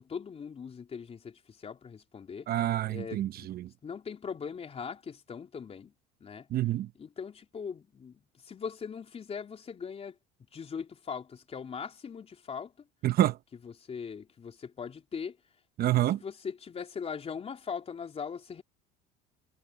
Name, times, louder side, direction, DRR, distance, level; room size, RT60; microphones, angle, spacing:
voice 1, 0.0-2.5 2.9-3.6 3.8-5.9 6.2-6.5 7.0-10.2 10.5-12.9 13.6-15.4 15.8-18.6, left 6 dB, 30° left, 3.8 m, -40 dB
voice 2, 2.5-3.7 6.5-6.9 13.0-13.4 15.8-16.2, right 13 dB, 50° right, 1.0 m, -27 dB
supercardioid pair, 105°, 21 cm